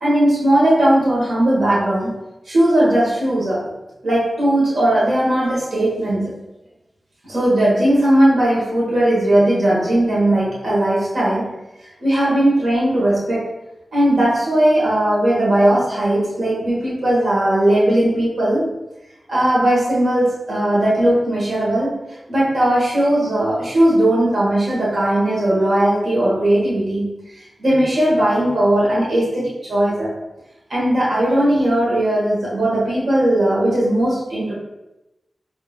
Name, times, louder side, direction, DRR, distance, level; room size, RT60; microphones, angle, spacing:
voice 1, 0.0-2.1 2.5-3.6 4.0-6.4 7.2-11.5 12.0-13.5 13.9-18.7 19.3-22.0 22.3-27.1 27.6-30.1 30.7-34.5, right 1 dB, 80° right, -7 dB, 1.3 m, -18 dB
4.7 x 2.7 x 2.4 m, 0.97 s
wide cardioid pair, 65°, 0 cm